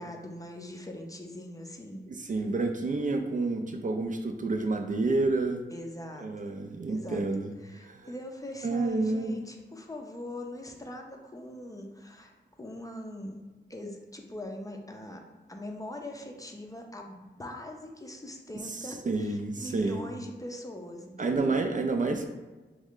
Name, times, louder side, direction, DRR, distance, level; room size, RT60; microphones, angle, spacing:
voice 1, 0.0-2.5 5.7-6.3 6.9-7.2 7.6-13.4 13.7-15.2 15.5-21.6, left 1 dB, 20° left, 2 dB, 0.5 m, -42 dB
voice 2, 2.1-5.6 6.2-7.5 7.8-8.1 8.6-9.4 18.7-20.0 21.2-22.3, right 3 dB, 45° right, 4 dB, 0.4 m, -29 dB
3.5 x 3.2 x 3.6 m, 1.2 s
wide cardioid pair, 130°, 19 cm